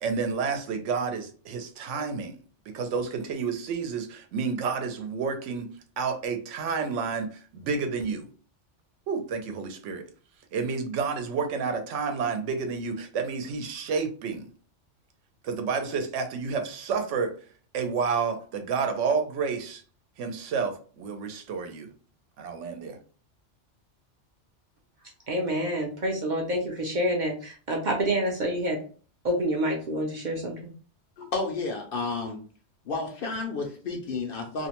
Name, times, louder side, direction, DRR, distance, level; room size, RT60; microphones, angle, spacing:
voice 1, 0.0-2.4 2.7-5.7 6.0-8.3 9.1-10.0 10.5-14.5 15.4-17.3 17.7-19.8 20.2-21.9 22.4-23.0, right 5 dB, 80° right, 6 dB, 0.9 m, -30 dB
voice 2, 25.3-28.8 29.2-30.7, right 1 dB, 55° right, 0 dB, 0.5 m, -27 dB
voice 3, 31.2-32.4 32.9-34.7, left 3 dB, 60° left, 3 dB, 0.6 m, -31 dB
2.5 x 2.0 x 2.8 m, 0.40 s
omnidirectional pair, 1.2 m